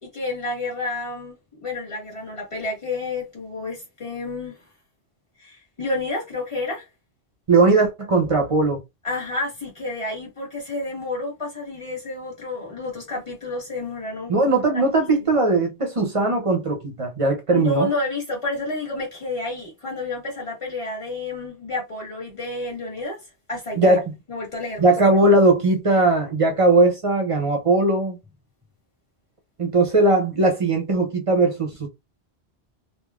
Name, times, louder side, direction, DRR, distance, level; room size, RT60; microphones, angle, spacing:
voice 1, 0.0-4.6 5.4-6.9 9.0-14.3 14.7-14.9 15.2-15.3 17.5-23.2 23.5-24.0 24.3-24.9, left 2 dB, 30° left, 1.5 m, -30 dB
voice 2, 7.5-8.8 14.3-17.9 23.8-24.1 24.8-28.2 29.6-31.9, right 2 dB, 35° right, 0.6 m, -19 dB
3.3 x 2.3 x 2.3 m
omnidirectional pair, 1.1 m